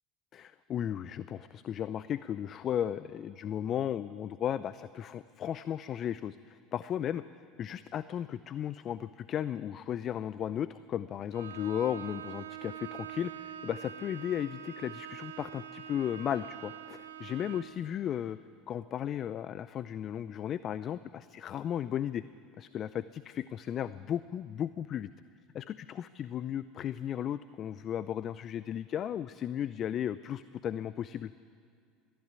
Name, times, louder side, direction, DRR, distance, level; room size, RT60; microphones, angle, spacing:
voice 1, 0.3-7.2 7.6-18.4 18.7-22.2 22.6-25.1 25.5-31.3, left 10 dB, 45° left, 15 dB, 0.5 m, -35 dB
Bowed string instrument, 11.3-17.8, right 10 dB, 90° right, 2.0 m, -44 dB
22.0 x 14.0 x 9.7 m, 2.3 s
hypercardioid pair, 75°, 0 cm